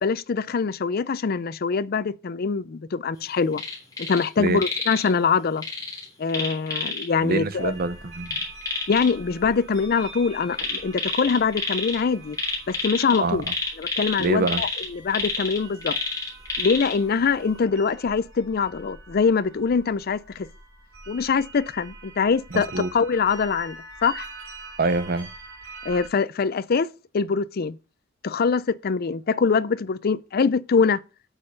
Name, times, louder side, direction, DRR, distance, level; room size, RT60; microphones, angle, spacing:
voice 1, 0.0-3.6 4.1-5.7 6.2-7.7 8.9-12.4 12.7-13.4 13.8-16.0 16.6-20.5 21.1-24.3 25.8-26.9 27.1-27.8 28.2-31.0, left 5 dB, 50° left, 0.5 m, -23 dB
sound 1, 3.5-4.3 4.6-5.1 5.6-7.1 8.3-9.1 10.5-12.0 12.3-17.0 17.4-17.5, left 3 dB, 20° left, 3.4 m, -29 dB
voice 2, 7.2-8.4 13.2-13.4 14.2-14.6 22.5-22.9 24.8-25.3, right 3 dB, 50° right, 0.7 m, -25 dB
sound 2, 7.6-26.1, right 3 dB, 70° right, 2.8 m, -44 dB
8.3 x 5.4 x 6.8 m
head